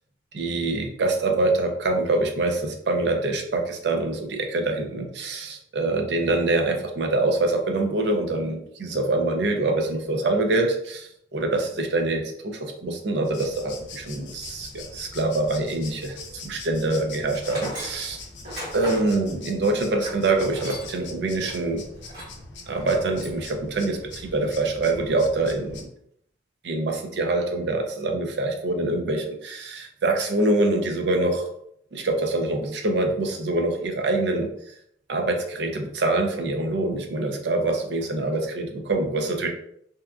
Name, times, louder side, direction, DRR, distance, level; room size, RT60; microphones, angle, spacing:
voice 1, 0.3-18.2 18.7-21.8 22.7-25.9 26.6-31.5 31.9-34.5 35.1-39.5, right 2 dB, 75° right, 3 dB, 0.5 m, -25 dB
sound 1, 13.2-25.8, left 3 dB, 85° left, 0.5 m, -42 dB
Tools, 17.3-21.1 21.4-21.5 22.0-22.4 22.8-23.4, equal, 55° right, 1.4 m, -38 dB
2.7 x 2.3 x 2.3 m, 0.72 s
head